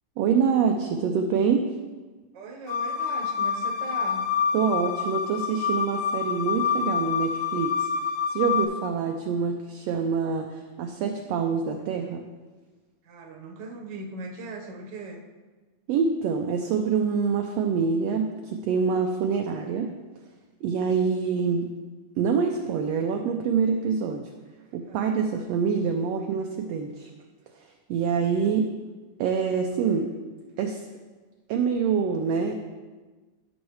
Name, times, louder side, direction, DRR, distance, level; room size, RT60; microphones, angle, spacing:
voice 1, 0.2-1.7 4.5-7.9 8.3-12.2 15.9-20.0 20.6-21.7 22.2-24.3 24.7-27.1 27.9-28.7 29.2-30.2 30.6-30.8 31.5-32.5, right 6 dB, 80° right, 3 dB, 1.5 m, -25 dB
voice 2, 2.3-4.3 13.0-15.2 24.9-25.1, right 3 dB, 50° right, 1 dB, 1.4 m, -39 dB
sound 1, 2.7-8.6, left 7 dB, 75° left, 2.1 m, -27 dB
14.0 x 6.3 x 3.2 m, 1.3 s
omnidirectional pair, 3.4 m